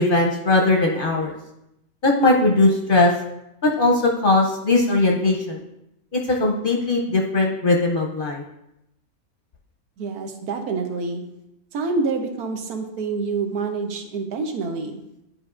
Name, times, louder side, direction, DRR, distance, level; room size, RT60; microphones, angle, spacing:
voice 1, 0.0-1.3 2.0-3.1 3.6-5.6 6.1-8.4, left 2 dB, 50° left, 0 dB, 0.7 m, -19 dB
voice 2, 10.0-11.2 11.7-15.0, right 4 dB, 90° right, 5 dB, 1.3 m, -27 dB
11.0 x 4.8 x 2.4 m, 0.86 s
omnidirectional pair, 1.6 m